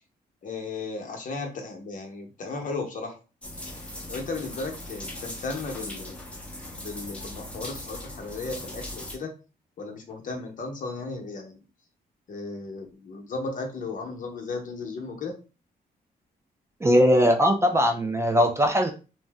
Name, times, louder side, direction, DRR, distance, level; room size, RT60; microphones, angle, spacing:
voice 1, 0.4-3.2 4.1-6.2 6.8-9.3 9.8-11.6 12.3-15.3, left 3 dB, 55° left, 2 dB, 0.8 m, -35 dB
sound 1, 3.4-9.2, left 1 dB, 5° left, 0.8 m, -39 dB
voice 2, 16.8-18.9, equal, 15° right, 5 dB, 0.4 m, -20 dB
2.6 x 2.0 x 3.4 m, 0.33 s
cardioid pair, 110°, 17 cm